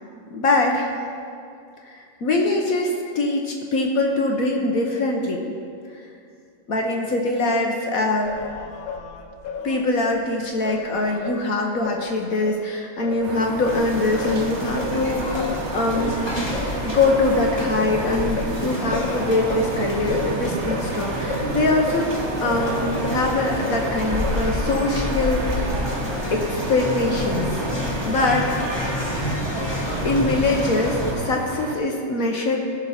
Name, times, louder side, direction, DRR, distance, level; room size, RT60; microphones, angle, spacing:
voice 1, 0.3-1.0 1.9-5.5 6.7-8.3 9.6-16.3 16.8-22.1 22.4-25.7 26.3-27.6 28.1-28.5 30.0-32.6, left 2 dB, 55° left, 1 dB, 1.2 m, -23 dB
Singing, 8.3-12.6 13.0-23.3 23.6-24.7, left 5 dB, 75° left, 1.4 m, -34 dB
sound 1, 13.2-31.8, right 5 dB, 65° right, 0.7 m, -32 dB
sound 2, 13.6-31.1, left 1 dB, 15° left, 1.2 m, -28 dB
16.5 x 6.4 x 4.2 m, 2.4 s
omnidirectional pair, 2.1 m